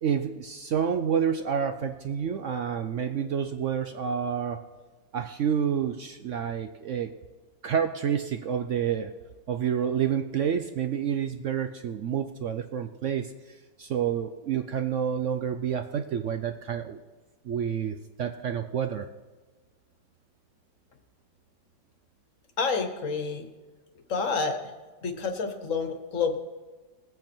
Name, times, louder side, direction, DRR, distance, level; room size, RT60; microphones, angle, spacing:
voice 1, 0.0-4.6 5.1-7.1 7.6-9.1 9.5-13.3 13.8-17.0 17.4-19.1, right 8 dB, 70° right, 7 dB, 0.7 m, -29 dB
voice 2, 22.6-23.5 24.1-24.7 25.0-26.4, left 4 dB, 50° left, 7 dB, 1.4 m, -29 dB
20.0 x 8.1 x 4.5 m, 1.3 s
omnidirectional pair, 1.9 m